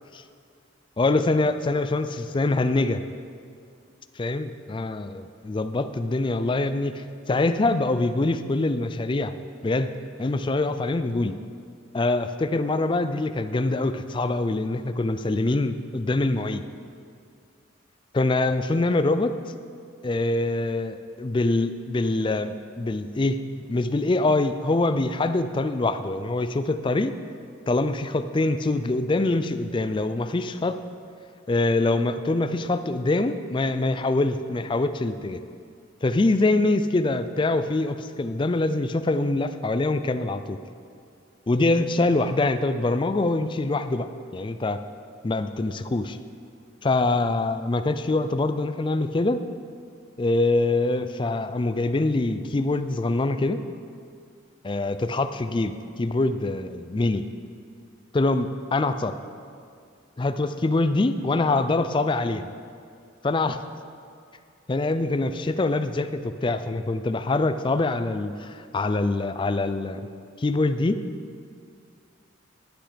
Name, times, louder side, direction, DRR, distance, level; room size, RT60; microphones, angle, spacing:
voice 1, 1.0-3.0 4.2-9.3 9.6-9.9 10.2-11.3 11.9-16.6 18.1-19.4 20.0-23.4 23.7-27.2 27.7-30.8 31.5-35.4 36.0-40.6 41.5-44.8 45.2-46.2 46.8-49.4 50.2-53.6 54.6-57.3 58.1-59.1 60.2-62.5 63.2-63.6 64.7-70.1 70.4-71.0, left 2 dB, 25° left, 10 dB, 0.3 m, -24 dB
10.5 x 8.9 x 5.0 m, 2.3 s
head